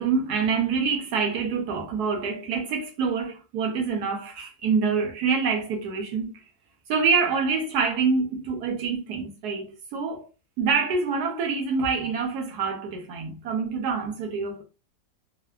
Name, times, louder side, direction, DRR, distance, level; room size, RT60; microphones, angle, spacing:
voice 1, 0.0-6.4 6.9-10.3 10.6-14.6, right 5 dB, 70° right, 1.1 m, -26 dB
3.3 x 2.1 x 2.3 m
omnidirectional pair, 2.0 m